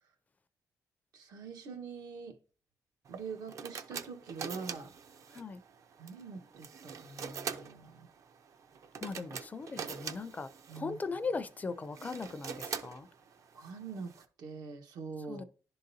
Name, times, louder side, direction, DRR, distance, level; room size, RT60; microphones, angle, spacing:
voice 1, 1.1-2.4 3.1-4.9 6.0-8.0 10.7-11.0 13.5-14.1 14.4-15.4, right 5 dB, 85° right, 1.2 m, -44 dB
sound 1, 3.1-14.3, right 6 dB, 60° right, 0.6 m, -44 dB
voice 2, 9.0-10.5 10.8-13.1 15.3-15.4, left 4 dB, 25° left, 0.4 m, -38 dB
11.0 x 3.8 x 2.7 m
cardioid pair, 140°, 6 cm